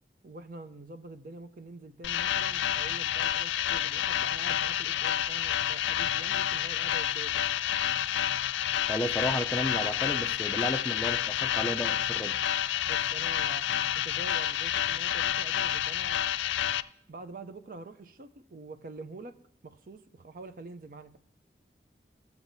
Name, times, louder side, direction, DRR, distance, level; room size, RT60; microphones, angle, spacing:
voice 1, 0.2-7.4 12.9-13.7 13.9-16.3 17.1-19.4 19.6-21.2, right 2 dB, 50° right, 10 dB, 0.5 m, -46 dB
sound 1, 2.0-16.8, left 11 dB, 90° left, 0.3 m, -29 dB
voice 2, 8.8-12.3, equal, 10° left, 7 dB, 0.4 m, -33 dB
16.0 x 7.0 x 2.6 m, 0.73 s
head